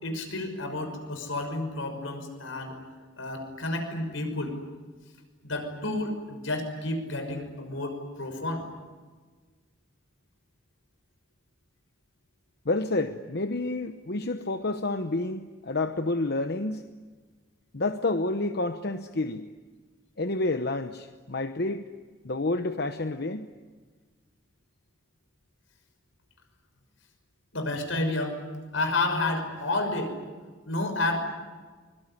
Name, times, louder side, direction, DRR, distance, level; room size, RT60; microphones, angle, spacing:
voice 1, 0.0-2.8 3.2-4.6 5.4-8.7 27.5-28.4 28.7-30.2 30.7-31.2, left 2 dB, 80° left, 6 dB, 6.0 m, -30 dB
voice 2, 12.6-16.9 17.7-19.5 20.2-21.8 22.2-23.5, left 2 dB, 55° left, 8 dB, 1.0 m, -29 dB
24.0 x 23.5 x 10.0 m, 1.4 s
head